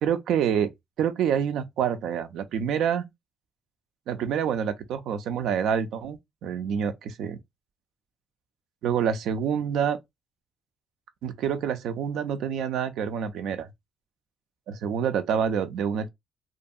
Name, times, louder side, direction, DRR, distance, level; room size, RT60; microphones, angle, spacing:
voice 1, 0.0-0.7 1.0-3.1 4.1-6.9 7.2-7.4 8.8-10.0 11.2-13.7 14.7-16.1, right 8 dB, 80° right, 0.4 m, -27 dB
2.7 x 2.5 x 2.2 m
cardioid pair, 90°, 0 cm